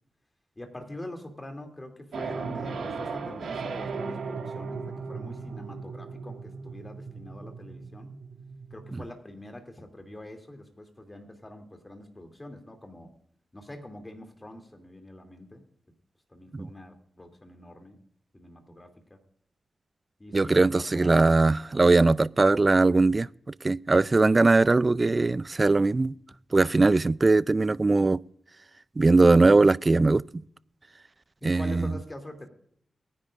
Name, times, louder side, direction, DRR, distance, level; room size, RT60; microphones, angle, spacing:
voice 1, 0.6-8.1 8.7-13.1 13.5-15.6 16.3-18.0 18.3-19.2 20.2-21.3 31.4-32.5, left 1 dB, 25° left, 2.8 m, -44 dB
sound 1, 2.1-9.1, right 5 dB, 85° right, 1.9 m, -37 dB
voice 2, 20.3-23.3 23.6-26.1 26.5-28.2 29.0-30.4 31.4-31.9, right 3 dB, 35° right, 0.3 m, -20 dB
22.0 x 9.9 x 2.5 m
cardioid pair, 50°, 0 cm